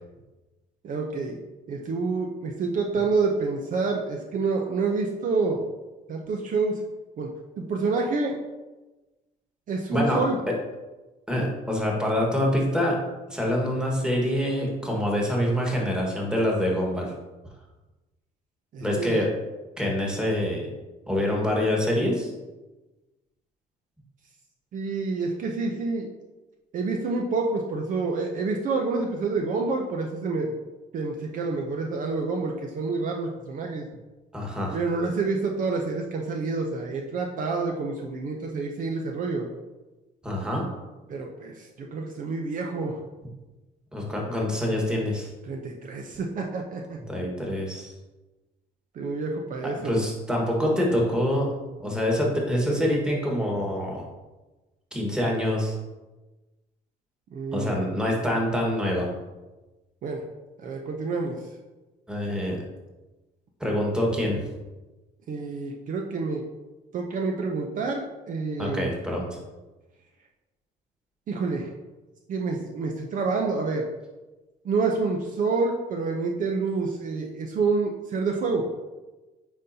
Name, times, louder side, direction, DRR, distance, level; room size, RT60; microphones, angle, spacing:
voice 1, 0.8-1.4 1.7-5.7 6.1-6.8 7.2-7.3 7.6-8.4 9.7-10.4 18.7-19.2 24.7-26.1 26.7-30.6 30.9-33.9 34.7-39.5 41.1-43.0 45.5-47.0 48.9-50.0 57.3-57.8 60.0-60.2 60.6-61.4 65.3-66.4 66.9-68.9 71.3-71.7 72.3-73.9 74.6-78.7, right 4 dB, 50° right, 1 dB, 0.7 m, -28 dB
voice 2, 9.9-10.2 11.3-13.0 13.3-17.1 18.8-19.3 19.8-20.7 21.1-22.3 34.3-34.8 40.2-40.7 43.9-45.3 47.1-47.9 49.6-51.5 51.8-54.1 54.9-55.8 57.5-59.1 62.1-62.6 63.6-64.4 68.6-69.4, left 1 dB, 5° right, -2 dB, 1.5 m, -25 dB
9.4 x 3.9 x 2.8 m, 1.1 s
cardioid pair, 110°, 17 cm